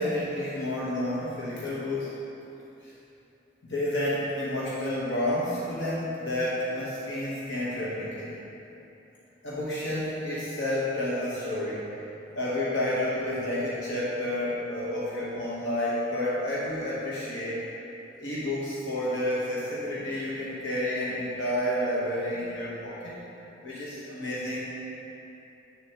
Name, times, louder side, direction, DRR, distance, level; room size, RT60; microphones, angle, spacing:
voice 1, 0.0-2.2 2.8-2.9 3.6-8.3 9.4-12.0 12.3-17.6 18.2-23.2 23.6-24.8, left 1 dB, 75° left, -8 dB, 1.1 m, -30 dB
7.9 x 6.6 x 2.9 m, 3.0 s
head